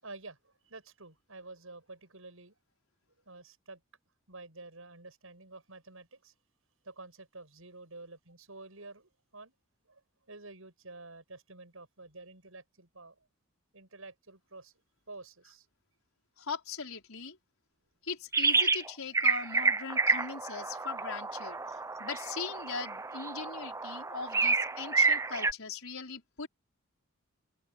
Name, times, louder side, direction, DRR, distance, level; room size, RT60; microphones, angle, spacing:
voice 1, 0.0-2.5 3.3-3.8 4.3-6.3 6.8-9.5 9.9-10.0 10.3-13.2 13.7-14.7 15.1-15.7, right 3 dB, 75° right, 7.1 m, -49 dB
voice 2, 16.4-17.4 18.0-21.6 22.0-26.5, left 5 dB, 80° left, 4.9 m, -40 dB
sound 1, 18.3-18.9 19.1-25.5, right 4 dB, 15° right, 0.5 m, -29 dB
open air
head